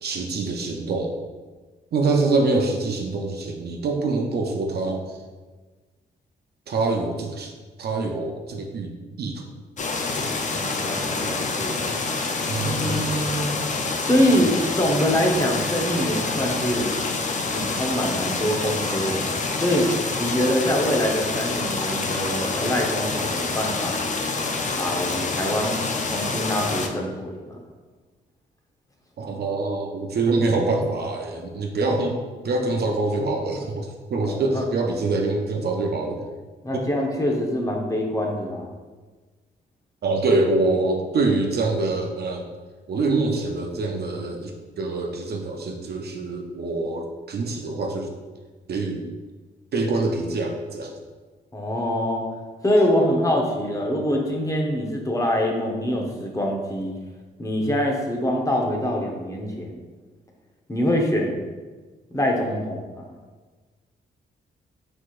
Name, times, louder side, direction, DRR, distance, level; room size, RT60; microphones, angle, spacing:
voice 1, 0.0-1.2 1.9-5.2 6.7-7.5 7.8-8.9 9.2-9.4 12.5-13.3 29.2-32.2 32.4-36.2 36.7-36.9 40.0-42.5 42.9-48.1 48.7-49.0 49.7-50.9, right 3 dB, 60° right, 2 dB, 0.7 m, -25 dB
sound 1, 9.8-26.9, left 3 dB, 40° left, 0.6 m, -27 dB
voice 2, 10.5-11.8 12.6-13.6 14.0-16.9 17.4-19.9 20.2-24.0 24.8-27.6 34.2-34.6 36.6-38.7 51.5-52.3 52.6-57.0 57.4-59.8 60.7-61.4 62.1-63.1, equal, 15° left, 0 dB, 1.0 m, -24 dB
4.5 x 4.4 x 2.5 m, 1.3 s
supercardioid pair, 60°, 19 cm